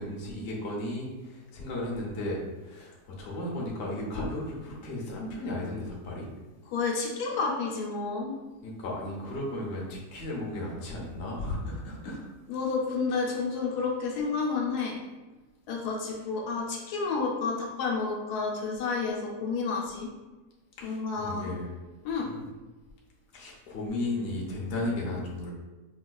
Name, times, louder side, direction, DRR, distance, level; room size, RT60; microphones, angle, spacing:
voice 1, 0.0-6.3 8.6-12.3 20.8-21.7 22.2-22.4 23.3-25.5, left 1 dB, 55° left, -3 dB, 0.8 m, -35 dB
voice 2, 6.7-8.3 12.5-15.0 15.7-20.1 20.8-21.5 22.0-22.3, left 4 dB, 80° left, -2 dB, 1.2 m, -30 dB
4.3 x 2.3 x 2.2 m, 1.2 s
omnidirectional pair, 1.7 m